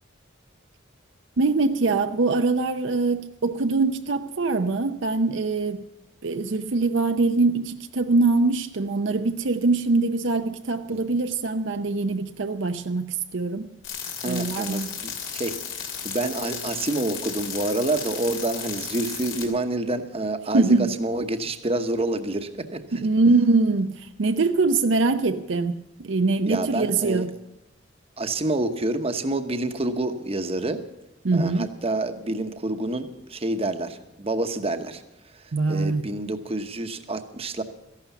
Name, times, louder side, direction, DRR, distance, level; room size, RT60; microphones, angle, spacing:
voice 1, 1.4-5.8 6.2-13.7 14.2-14.9 20.5-20.9 22.9-27.3 31.2-31.7 35.5-36.1, right 3 dB, 70° right, 0.6 m, -23 dB
sound 1, 13.8-19.5, left 8 dB, 80° left, 2.6 m, -34 dB
voice 2, 14.2-23.1 26.5-27.3 28.2-30.8 31.3-35.0 35.3-37.6, right 2 dB, 30° right, 1.0 m, -28 dB
14.5 x 11.5 x 7.0 m
head